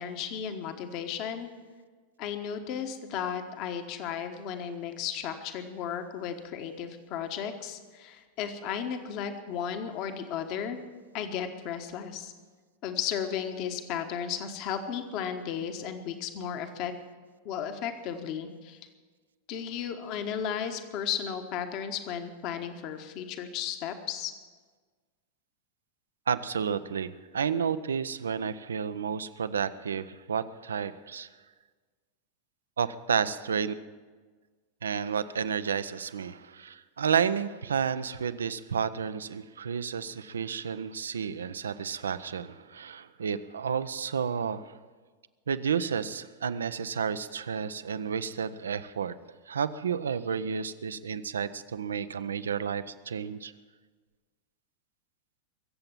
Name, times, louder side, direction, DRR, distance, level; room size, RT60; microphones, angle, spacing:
voice 1, 0.0-1.5 2.2-10.8 11.1-12.3 12.8-16.9 17.4-18.8 19.5-24.3, left 8 dB, 40° left, 7 dB, 1.3 m, -34 dB
voice 2, 26.3-31.3 32.8-33.7 34.8-44.7 45.5-49.2 49.5-53.5, right 7 dB, 70° right, 14 dB, 0.6 m, -31 dB
23.0 x 7.8 x 7.3 m, 1.4 s
figure-of-eight pair, 90°, 0 cm